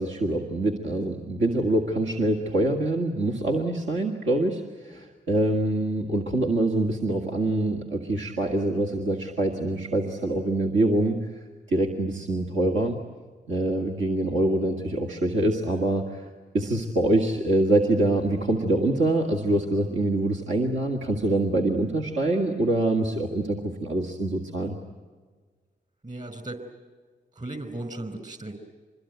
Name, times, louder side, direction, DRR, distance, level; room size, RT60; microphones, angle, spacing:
voice 1, 0.0-11.2 11.7-13.0 13.5-16.3 16.5-24.8, right 1 dB, 80° right, 0 dB, 2.1 m, -25 dB
voice 2, 26.0-26.6 27.3-28.6, right 2 dB, 40° right, 8 dB, 4.9 m, -36 dB
26.0 x 21.5 x 9.4 m, 1.5 s
supercardioid pair, 40°, 20 cm